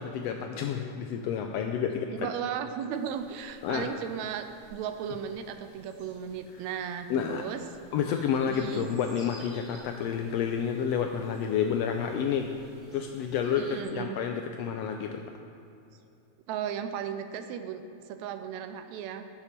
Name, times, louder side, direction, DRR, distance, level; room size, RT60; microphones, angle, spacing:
voice 1, 0.0-2.3 3.6-3.9 7.1-7.4 7.9-12.5 12.9-15.2, left 7 dB, 80° left, 4 dB, 1.5 m, -30 dB
voice 2, 2.1-4.5 4.7-7.6 8.5-8.9 13.6-14.2 16.5-17.8 18.1-19.2, right 8 dB, 80° right, 8 dB, 1.8 m, -35 dB
sound 1, 2.9-13.8, right 1 dB, 35° right, 2.3 m, -56 dB
10.5 x 8.8 x 4.4 m, 2.8 s
omnidirectional pair, 3.3 m